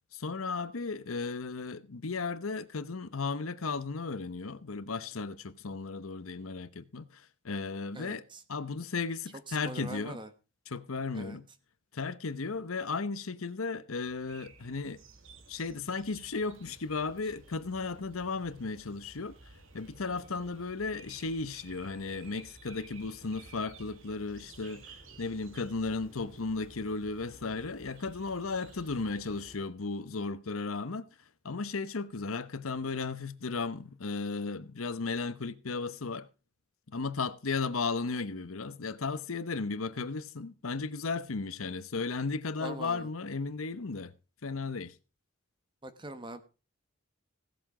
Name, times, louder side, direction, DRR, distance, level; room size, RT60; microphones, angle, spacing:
voice 1, 0.1-10.2 10.7-11.5 11.9-15.0 15.5-19.4 19.7-31.1 31.4-36.3 36.9-44.1 44.4-44.9, left 4 dB, 90° left, 0.9 m, -35 dB
voice 2, 7.9-8.4 9.5-10.3 11.1-11.4 42.6-43.1 45.8-46.4, right 1 dB, 25° right, 1.1 m, -42 dB
sound 1, 14.0-29.5, right 3 dB, 70° right, 1.8 m, -54 dB
16.5 x 7.7 x 4.9 m
head